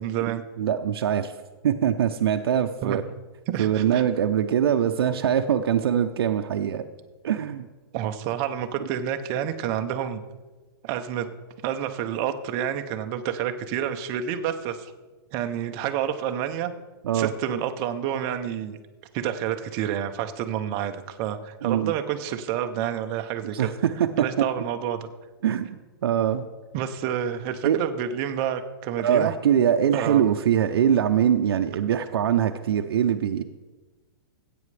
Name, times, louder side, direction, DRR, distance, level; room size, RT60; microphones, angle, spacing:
voice 1, 0.0-0.4 2.8-3.1 3.5-4.0 7.9-10.2 10.8-11.3 11.6-14.9 15.3-16.7 17.1-18.8 19.1-23.7 24.2-25.1 26.7-29.3 29.9-30.4, right 9 dB, 25° right, 7 dB, 0.6 m, -29 dB
voice 2, 0.6-1.3 1.6-3.0 3.6-6.8 7.2-7.7 17.0-17.3 21.6-21.9 23.5-23.7 24.2-24.3 25.4-26.5 27.6-27.8 29.0-33.4, right 9 dB, 75° right, 6 dB, 0.6 m, -23 dB
16.0 x 8.5 x 3.3 m, 1.3 s
hypercardioid pair, 165°, 13 cm